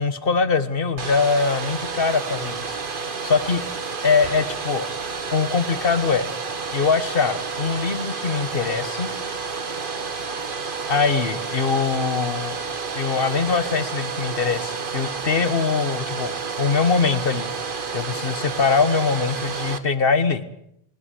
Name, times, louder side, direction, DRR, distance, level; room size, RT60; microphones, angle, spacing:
voice 1, 0.0-3.6 4.0-4.9 5.3-6.3 6.7-9.1 10.9-12.6 12.9-17.5 17.9-20.4, left 5 dB, 60° left, 12 dB, 1.5 m, -22 dB
Domestic sounds home sounds, 1.0-19.8, right 5 dB, 55° right, 1.6 m, -30 dB
21.0 x 19.0 x 8.3 m, 0.76 s
omnidirectional pair, 1.1 m